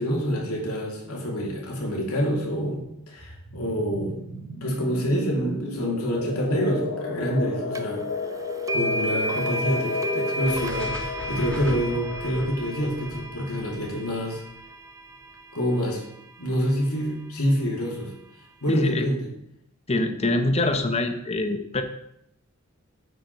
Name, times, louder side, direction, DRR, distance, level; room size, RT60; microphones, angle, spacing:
voice 1, 0.0-4.2 4.6-8.1 8.7-14.4 15.5-16.0 16.4-18.1 18.6-19.3, equal, 90° left, -1 dB, 2.6 m, -27 dB
sound 1, 3.2-13.7, left 3 dB, 60° left, 2.6 m, -33 dB
sound 2, 7.8-7.9 8.7-16.7, right 1 dB, 15° right, 0.4 m, -33 dB
sound 3, 10.4-14.6, left 1 dB, 5° left, 1.8 m, -38 dB
voice 2, 18.7-19.1 19.9-21.8, left 2 dB, 30° left, 7 dB, 0.8 m, -24 dB
8.0 x 5.0 x 6.0 m, 0.76 s
head